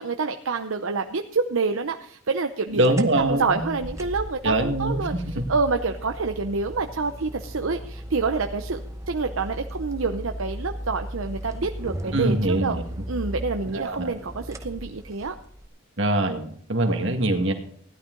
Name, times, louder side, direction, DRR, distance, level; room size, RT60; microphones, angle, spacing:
voice 1, 0.0-2.8 3.2-5.1 5.5-12.8 13.1-15.3, right 4 dB, 75° right, 6 dB, 0.7 m, -27 dB
voice 2, 2.7-3.7 4.4-5.5 12.1-13.0 13.7-14.1 16.0-17.5, right 1 dB, 60° right, 4 dB, 1.9 m, -24 dB
sound 1, 2.8-15.7, equal, 15° right, 0.8 m, -36 dB
16.5 x 12.0 x 3.9 m, 0.62 s
head